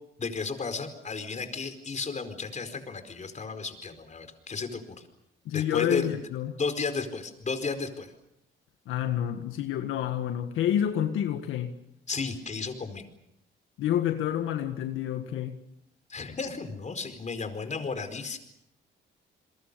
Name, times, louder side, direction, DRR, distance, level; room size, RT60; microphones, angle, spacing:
voice 1, 0.2-5.0 5.5-6.1 6.6-8.1 12.1-13.0 16.1-18.4, left 4 dB, 35° left, 8 dB, 4.7 m, -33 dB
voice 2, 5.5-6.6 8.9-11.7 13.8-15.6, left 10 dB, 85° left, 6 dB, 1.7 m, -28 dB
28.5 x 22.5 x 6.9 m, 0.82 s
cardioid pair, 90°, 20 cm